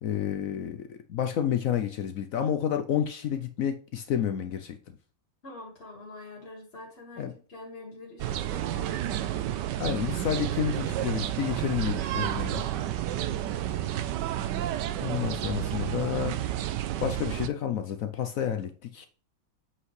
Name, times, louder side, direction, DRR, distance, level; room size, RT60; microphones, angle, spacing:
voice 1, 0.0-4.8 7.2-7.3 9.8-12.6 15.0-16.4 17.0-19.1, left 9 dB, 75° left, 0.7 m, -30 dB
voice 2, 5.4-9.3 13.8-14.3, left 2 dB, 35° left, 1.6 m, -46 dB
sound 1, 8.2-17.5, right 12 dB, 70° right, 1.2 m, -31 dB
7.7 x 5.7 x 3.2 m
omnidirectional pair, 2.1 m